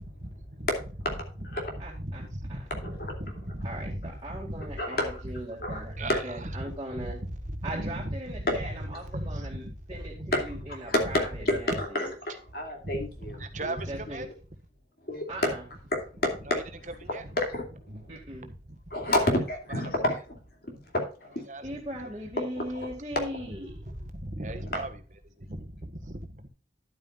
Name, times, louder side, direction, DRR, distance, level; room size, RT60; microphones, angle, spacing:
voice 1, 0.0-0.7 1.4-4.7 5.2-5.3 5.7-6.5 6.9-8.8 9.0-10.3 11.7-11.8 12.8-14.3 16.4-17.4 17.9-19.3 21.5-22.1 23.7-26.5, right 1 dB, 45° right, 1.4 m, -38 dB
voice 2, 1.8-2.2 2.5-2.6 3.6-3.9 4.2-7.2 7.6-12.1 13.9-14.2 15.3-15.6 18.1-18.5 21.6-23.8, right 1 dB, 25° right, 2.2 m, -39 dB
voice 3, 4.8-5.2 5.6-5.8 6.1-6.2 10.3-10.4 10.8-13.3 13.6-13.7 15.0-15.3 15.9-16.3 17.4-17.6 18.9-20.4 20.9-21.5 22.7-22.9, left 1 dB, 55° left, 2.6 m, -29 dB
11.5 x 9.1 x 2.5 m
head